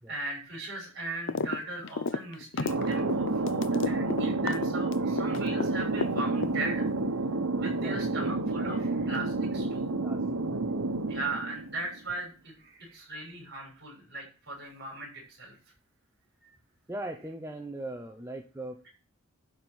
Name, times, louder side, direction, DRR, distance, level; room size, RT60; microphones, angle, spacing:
voice 1, 0.1-6.8 7.5-9.9 11.1-15.6, right 2 dB, 45° right, 0 dB, 5.9 m, -38 dB
sound 1, 1.3-1.6 1.8-5.7 6.0-6.9, left 4 dB, 55° left, 0.6 m, -31 dB
Thunder, 2.7-12.0, right 2 dB, 85° right, 1.1 m, -30 dB
voice 2, 10.0-10.9 16.9-18.9, right 1 dB, 10° right, 3 dB, 0.7 m, -40 dB
11.5 x 4.3 x 7.9 m, 0.37 s
head